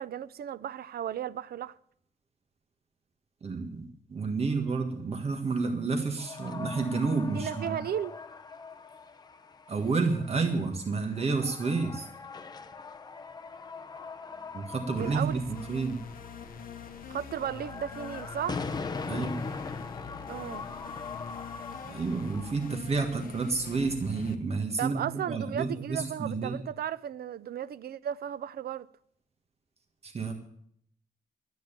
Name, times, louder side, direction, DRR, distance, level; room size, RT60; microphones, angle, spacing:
voice 1, 0.0-1.8 7.3-8.2 15.0-15.4 17.1-18.6 20.3-20.7 24.8-28.9, right 9 dB, 70° right, 0.6 m, -35 dB
voice 2, 3.4-7.8 9.7-12.1 14.5-16.0 19.1-19.4 21.8-26.6 30.0-30.3, right 4 dB, 40° right, 1.6 m, -30 dB
sound 1, 6.2-22.8, left 4 dB, 25° left, 0.7 m, -41 dB
sound 2, 15.0-24.4, left 6 dB, 60° left, 1.0 m, -45 dB
12.5 x 9.0 x 8.8 m
wide cardioid pair, 170°, 17 cm